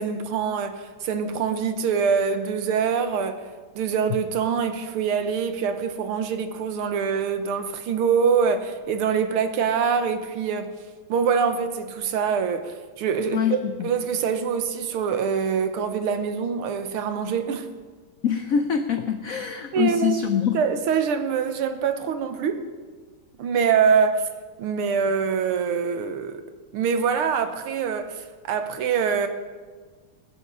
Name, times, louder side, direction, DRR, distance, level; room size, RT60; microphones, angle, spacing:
voice 1, 0.0-3.5 3.8-10.7 11.1-17.7 19.7-22.7 23.4-24.2 24.6-26.4 26.7-29.3, right 6 dB, 85° right, 1.9 m, -24 dB
voice 2, 13.3-13.9 18.2-20.6, left 8 dB, 85° left, 0.7 m, -24 dB
20.5 x 7.0 x 5.5 m
omnidirectional pair, 2.4 m